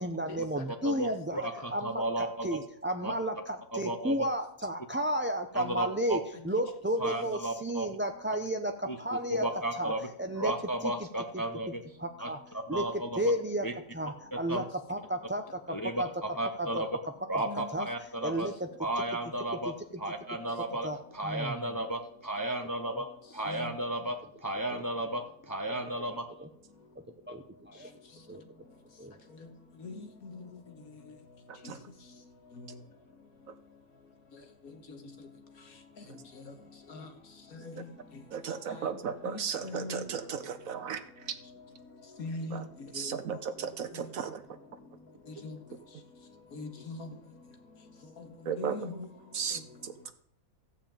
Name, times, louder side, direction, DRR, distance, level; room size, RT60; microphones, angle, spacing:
voice 1, 0.0-9.5 9.7-10.5 10.8-10.9 11.3-11.4 12.0-12.4 12.7-16.1 16.6-16.8 17.3-17.4 17.7-17.9 18.2-18.7 19.6-20.0 20.8-21.8 22.9-23.0 24.7-24.8 25.9-26.5 27.3-27.9 28.3-28.4 29.0-29.1, right 1 dB, 10° right, 5 dB, 0.5 m, -33 dB
voice 2, 0.8-2.5 3.0-3.1 3.7-4.1 5.5-6.2 7.0-7.9 8.9-9.0 9.3-10.1 10.4-11.8 12.2-12.3 12.7-13.2 13.6-13.7 14.3-14.6 15.7-17.0 17.3-18.5 18.8-19.7 20.0-20.9 21.1-26.3, right 1 dB, 15° left, 5 dB, 0.9 m, -34 dB
voice 3, 17.5-17.9 23.4-23.7 29.8-30.5 31.6-31.7 34.9-35.0 36.4-36.5 36.9-37.1 37.5-37.9 38.1-38.2 38.5-38.9 39.2-40.1 42.2-43.4 44.0-44.1 45.3-45.6 46.5-47.1 48.2-49.1, left 3 dB, 75° left, 6 dB, 2.1 m, -42 dB
voice 4, 31.5-31.8 33.5-33.6 37.8-37.9 38.3-41.4 42.5-42.6 42.9-44.4 48.4-48.8 49.3-50.1, right 7 dB, 70° right, 10 dB, 1.2 m, -36 dB
15.0 x 5.5 x 8.8 m, 0.66 s
omnidirectional pair, 1.5 m